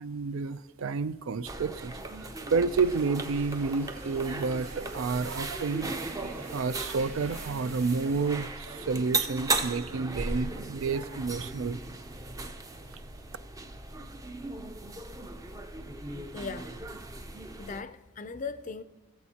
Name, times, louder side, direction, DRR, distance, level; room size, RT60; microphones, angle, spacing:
voice 1, 0.0-5.9 6.4-11.8, right 4 dB, 70° right, 0.4 m, -30 dB
sound 1, 1.5-17.8, right 2 dB, 15° right, 0.5 m, -37 dB
sound 2, 2.7-8.5, right 3 dB, 90° right, 1.8 m, -48 dB
voice 2, 16.3-16.7 17.6-18.8, left 4 dB, 35° left, 0.4 m, -38 dB
17.0 x 7.2 x 2.8 m
head